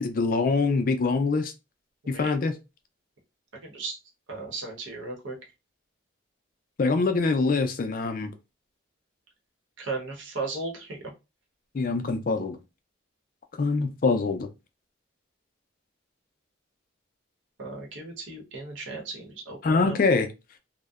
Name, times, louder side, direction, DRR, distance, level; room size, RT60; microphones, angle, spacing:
voice 1, 0.0-1.5 2.1-2.5 6.8-8.3 11.7-12.6 13.6-14.5 19.6-20.3, left 4 dB, 45° left, 0.3 m, -24 dB
voice 2, 3.6-4.0 4.3-5.4 9.8-11.0 17.6-20.0, right 3 dB, 75° right, 0.9 m, -36 dB
2.6 x 2.1 x 2.3 m
head